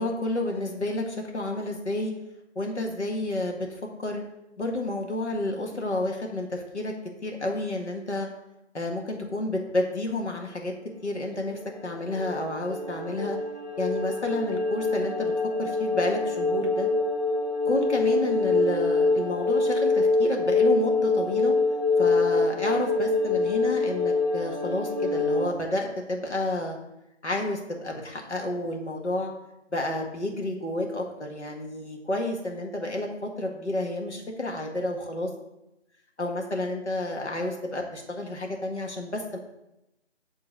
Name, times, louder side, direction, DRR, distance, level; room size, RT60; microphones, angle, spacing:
voice 1, 0.0-2.1 2.6-4.2 4.6-6.9 7.2-8.3 8.7-10.7 11.0-13.4 13.8-15.3 15.6-16.9 17.7-21.5 22.0-26.8 27.2-29.3 29.7-35.3 36.2-39.4, left 2 dB, 70° left, 1 dB, 1.9 m, -30 dB
sound 1, 11.4-25.5, left 3 dB, 30° right, 0.5 m, -25 dB
7.7 x 3.8 x 6.6 m, 0.89 s
figure-of-eight pair, 160°, 36 cm